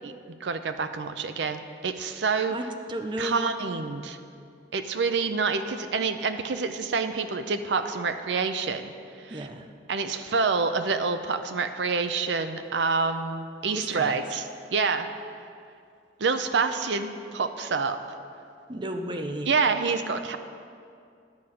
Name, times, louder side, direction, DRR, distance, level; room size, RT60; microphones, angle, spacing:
voice 1, 0.4-2.6 3.2-4.2 4.7-8.9 9.2-9.5 9.9-14.4 14.7-15.1 16.2-18.0 19.5-20.4, right 4 dB, 80° right, 8 dB, 0.6 m, -27 dB
voice 2, 2.5-3.5 9.3-9.7 13.7-14.2 18.7-19.5, right 1 dB, 25° right, 5 dB, 0.6 m, -33 dB
10.5 x 6.6 x 5.7 m, 2.4 s
head